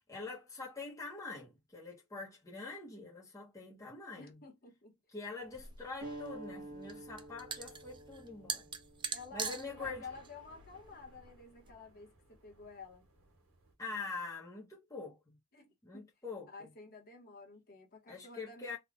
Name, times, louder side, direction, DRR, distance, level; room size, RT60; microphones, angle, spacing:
voice 1, 0.1-4.4 5.1-8.7 9.3-10.0 13.8-15.3 15.8-16.5 18.1-18.8, left 4 dB, 15° left, 1.0 m, -44 dB
voice 2, 4.2-4.9 9.1-13.1 15.5-16.1 16.5-18.8, left 4 dB, 45° left, 1.2 m, -51 dB
sound 1, 5.4-13.7, right 1 dB, 80° right, 1.6 m, -63 dB
sound 2, 5.5-11.7, right 6 dB, 20° right, 0.3 m, -44 dB
sound 3, 6.0-11.1, right 1 dB, 40° right, 1.6 m, -50 dB
3.6 x 2.4 x 3.6 m
head